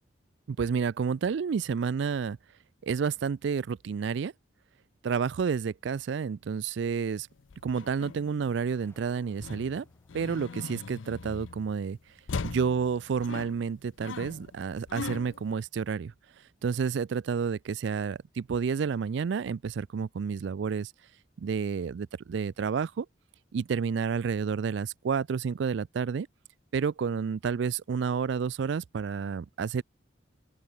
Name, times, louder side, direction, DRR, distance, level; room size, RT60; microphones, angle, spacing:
voice 1, 0.5-2.4 2.8-4.3 5.0-7.3 7.6-9.9 10.1-12.0 12.4-16.1 16.6-20.9 21.4-23.1 23.5-26.3 26.7-29.8, right 6 dB, 65° right, 0.3 m, -30 dB
sound 1, 7.4-8.8 9.4-11.8 12.3-15.5, left 4 dB, 75° left, 0.6 m, -40 dB
sound 2, 8.7-14.8, left 1 dB, 10° left, 7.4 m, -68 dB
open air
head